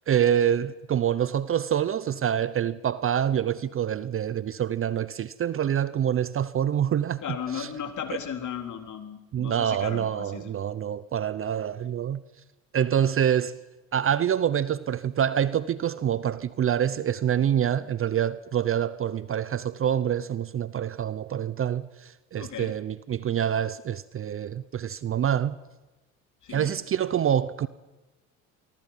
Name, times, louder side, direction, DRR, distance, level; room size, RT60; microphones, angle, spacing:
voice 1, 0.1-7.2 7.5-7.7 9.3-12.2 12.7-13.6 13.9-25.6 26.5-27.7, right 9 dB, 30° right, 0.7 m, -26 dB
voice 2, 7.2-10.5 22.4-22.8 26.4-26.7, left 8 dB, 45° left, 3.7 m, -36 dB
25.0 x 23.0 x 5.7 m
supercardioid pair, 90°, 41 cm